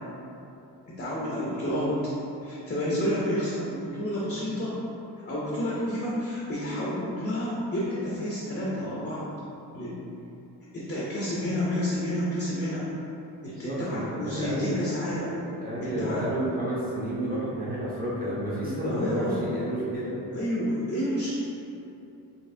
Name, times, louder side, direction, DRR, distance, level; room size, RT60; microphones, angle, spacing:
voice 1, 0.9-2.0 2.4-4.8 5.3-9.3 9.7-10.0 10.7-12.9 13.4-15.3 15.8-16.2 18.9-19.4 20.3-21.3, equal, 25° left, -7 dB, 0.4 m, -30 dB
voice 2, 13.4-14.7 15.4-20.2, equal, 20° right, -8 dB, 0.7 m, -30 dB
4.0 x 3.0 x 2.6 m, 2.8 s
wide cardioid pair, 180°, 42 cm